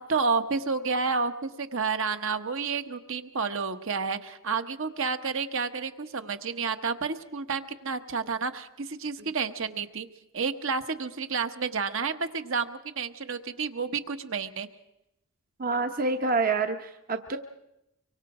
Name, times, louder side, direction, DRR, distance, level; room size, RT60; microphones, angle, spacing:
voice 1, 0.1-10.1 10.3-14.7, right 5 dB, 60° right, 8 dB, 1.1 m, -30 dB
voice 2, 15.6-17.4, right 3 dB, 40° right, 7 dB, 0.9 m, -27 dB
24.0 x 24.0 x 4.9 m, 0.86 s
head